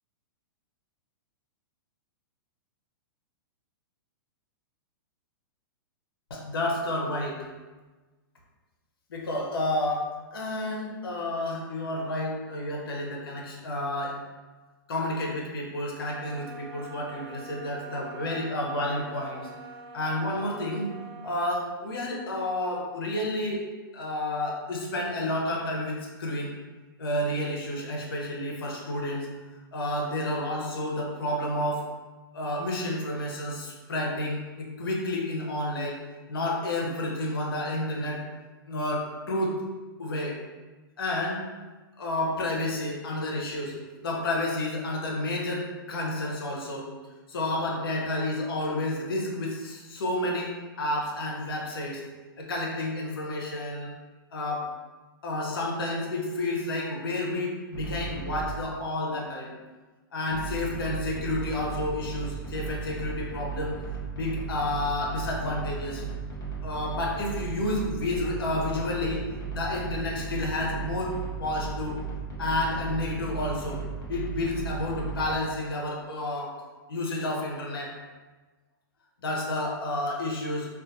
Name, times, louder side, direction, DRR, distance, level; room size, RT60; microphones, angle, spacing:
voice 1, 6.3-7.5 9.1-14.2 14.9-19.5 19.9-20.9 21.2-23.6 23.9-26.6 27.0-29.3 29.7-31.8 32.3-36.0 36.3-38.2 38.7-39.6 40.0-40.4 41.0-41.4 42.0-43.8 44.0-46.9 47.3-52.0 52.4-53.9 54.3-54.7 55.2-59.5 60.1-63.7 64.1-66.1 66.6-69.2 69.5-71.1 71.4-72.0 72.4-73.8 74.1-76.5 76.9-77.9 79.2-80.7, left 1 dB, 80° left, -2 dB, 0.7 m, -30 dB
sound 1, 16.0-21.6, right 4 dB, 80° right, 0.5 m, -44 dB
sound 2, 57.7-58.6 60.3-75.4, right 5 dB, 30° left, 0.8 m, -36 dB
2.4 x 2.3 x 2.6 m, 1.3 s
hypercardioid pair, 125°, 12 cm